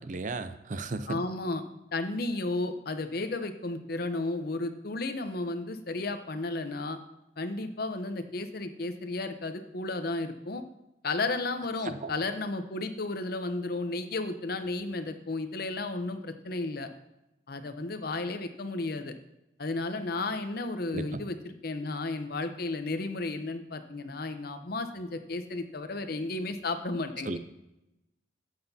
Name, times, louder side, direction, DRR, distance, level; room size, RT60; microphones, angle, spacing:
voice 1, 0.0-1.2 11.8-12.1 20.9-21.2 27.2-27.4, right 3 dB, 45° right, 11 dB, 0.5 m, -35 dB
voice 2, 1.1-1.6 1.9-7.0 7.4-10.6 11.0-16.9 17.5-19.1 19.6-27.4, left 2 dB, 55° left, 8 dB, 0.8 m, -33 dB
12.5 x 8.0 x 2.8 m, 0.90 s
head